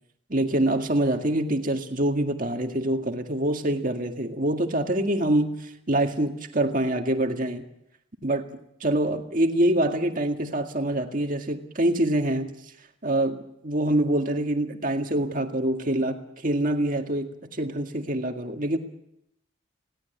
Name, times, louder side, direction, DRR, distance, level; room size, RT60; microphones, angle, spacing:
voice 1, 0.3-7.6 8.2-8.5 8.8-12.5 13.0-18.8, right 1 dB, 40° right, 5 dB, 1.9 m, -25 dB
20.0 x 17.0 x 9.4 m, 0.81 s
head